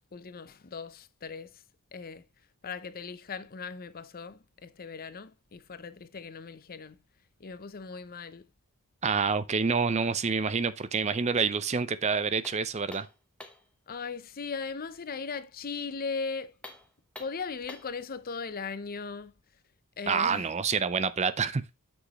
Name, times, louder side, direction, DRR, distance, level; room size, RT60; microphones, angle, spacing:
voice 1, 0.0-1.5 1.9-2.2 2.6-7.0 7.4-8.4 13.9-16.5 17.2-19.3 20.0-20.5, left 5 dB, 40° left, 0.6 m, -38 dB
voice 2, 9.0-13.1 20.1-21.6, right 5 dB, 30° right, 0.5 m, -27 dB
sound 1, 12.4-13.7 16.5-18.0, left 2 dB, 5° left, 1.1 m, -48 dB
8.0 x 6.3 x 3.0 m
head